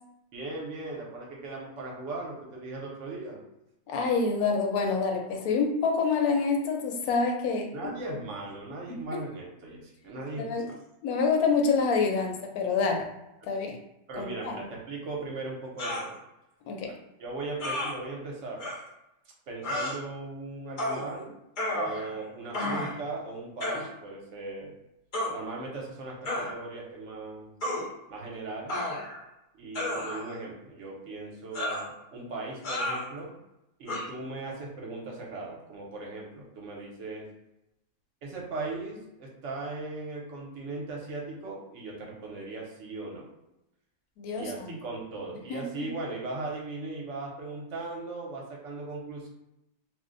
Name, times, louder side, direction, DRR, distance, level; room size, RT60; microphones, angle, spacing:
voice 1, 0.3-3.4 7.7-10.5 14.1-16.2 16.8-18.6 19.5-21.4 21.7-24.7 25.3-27.5 28.1-28.8 29.5-33.4 33.8-37.2 38.2-43.3 44.4-49.3, right 3 dB, 55° right, -2 dB, 0.9 m, -38 dB
voice 2, 3.9-7.7 8.9-9.0 10.4-10.7 11.0-13.0 13.5-13.8 14.2-14.6 16.7-16.9 44.2-44.8 45.5-45.9, left 4 dB, 70° left, 2 dB, 1.0 m, -27 dB
sound 1, 15.8-16.1 17.6-17.9 18.6-18.8 19.6-20.0 20.8-21.0 21.6-22.2 22.5-23.0 23.6-23.9 25.1-25.3 26.3-26.5 27.6-27.9 28.7-29.2 29.7-30.4 31.5-31.9 32.6-33.0 33.9-34.0, left 1 dB, 55° left, 0.5 m, -31 dB
2.6 x 2.1 x 3.7 m, 0.88 s
omnidirectional pair, 1.7 m